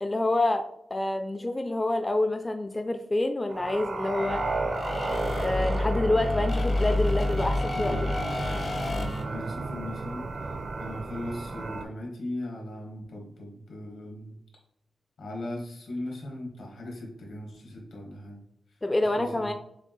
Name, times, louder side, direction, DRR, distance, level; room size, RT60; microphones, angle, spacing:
voice 1, 0.0-4.4 5.3-8.0 18.8-19.5, left 2 dB, 20° left, 6 dB, 0.3 m, -27 dB
sound 1, 3.5-11.9, right 3 dB, 50° right, 0.5 m, -34 dB
sound 2, 4.1-9.2, left 2 dB, 50° left, 0.7 m, -29 dB
voice 2, 7.7-14.4 15.2-18.4 19.1-19.5, left 1 dB, 85° left, -1 dB, 1.7 m, -38 dB
6.6 x 2.5 x 3.1 m, 0.74 s
wide cardioid pair, 130°, 0 cm